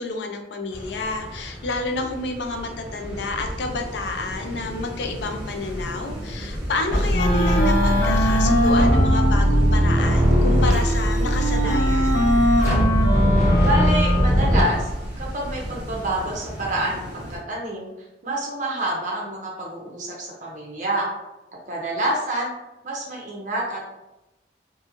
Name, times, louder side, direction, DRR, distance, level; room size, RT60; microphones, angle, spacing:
voice 1, 0.0-12.3, left 2 dB, 80° left, 5 dB, 0.4 m, -29 dB
sound 1, 0.7-17.4, equal, 5° right, 1.0 m, -33 dB
sound 2, 6.9-14.6, equal, 15° left, 1.0 m, -20 dB
Wind instrument woodwind instrument, 7.1-14.5, equal, 60° left, 0.8 m, -23 dB
voice 2, 13.6-14.9 15.2-17.9 18.2-21.1 21.7-22.5 22.8-23.9, right 1 dB, 45° right, -3 dB, 0.5 m, -27 dB
2.8 x 2.5 x 2.5 m, 0.99 s
head